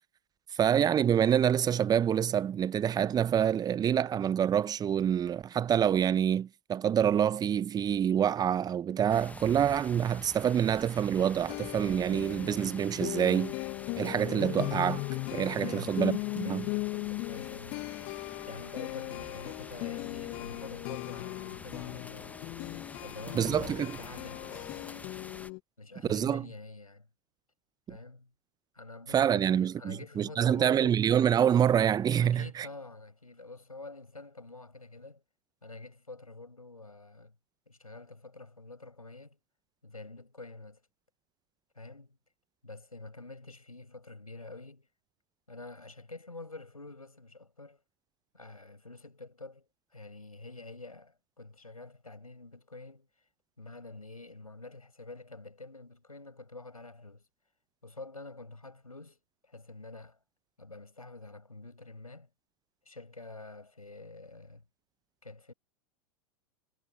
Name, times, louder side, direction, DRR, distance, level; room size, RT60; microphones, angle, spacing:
voice 1, 0.6-13.5 14.0-15.0 15.3-16.7 23.3-23.9 26.1-26.4 27.9-28.0 29.1-32.7, right 9 dB, 20° right, 1.0 m, -26 dB
sound 1, 9.1-25.5, left 3 dB, 10° left, 1.4 m, -48 dB
sound 2, 11.5-25.6, left 31 dB, 45° left, 1.7 m, -38 dB
voice 2, 15.6-16.1 16.4-17.8 18.5-22.4 23.0-25.1 25.8-27.1 27.9-28.3 28.7-31.0 32.2-35.2 35.6-37.3 37.7-39.4 39.8-40.8 41.7-42.2 42.6-44.9 45.5-47.8 48.3-53.1 53.6-57.3 57.8-60.2 60.6-62.3 62.8-64.6 65.2-65.5, left 3 dB, 85° left, 6.7 m, -47 dB
figure-of-eight pair, 95°, 18 cm